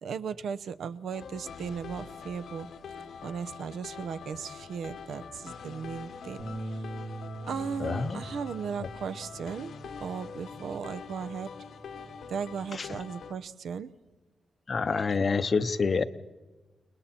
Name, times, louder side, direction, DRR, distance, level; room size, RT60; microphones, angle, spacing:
voice 1, 0.0-2.7 3.2-6.4 6.7-6.9 7.4-9.7 10.0-11.5 12.3-13.9, right 6 dB, 75° right, 0.7 m, -36 dB
sound 1, 1.1-13.3, left 6 dB, 75° left, 1.1 m, -44 dB
Bass guitar, 6.4-10.9 11.3-12.6, right 2 dB, 50° right, 2.0 m, -43 dB
voice 2, 7.8-8.2 12.7-12.9 14.7-16.0, left 4 dB, 35° left, 0.7 m, -27 dB
29.5 x 20.5 x 4.4 m
wide cardioid pair, 170°, 0 cm